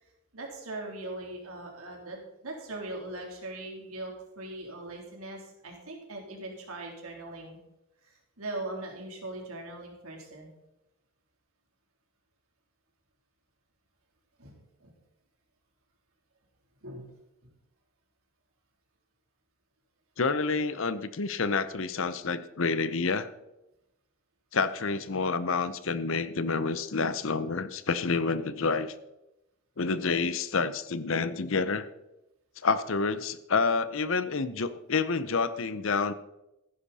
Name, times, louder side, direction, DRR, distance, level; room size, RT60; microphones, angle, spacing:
voice 1, 0.3-7.6 8.0-10.5 14.4-14.9 16.8-17.1 17.4-17.5, right 2 dB, 85° right, 0 dB, 3.4 m, -40 dB
voice 2, 20.2-23.3 24.5-28.9 29.8-31.9 32.6-36.1, left 4 dB, 70° left, 14 dB, 0.8 m, -28 dB
15.0 x 11.0 x 4.2 m, 0.91 s
head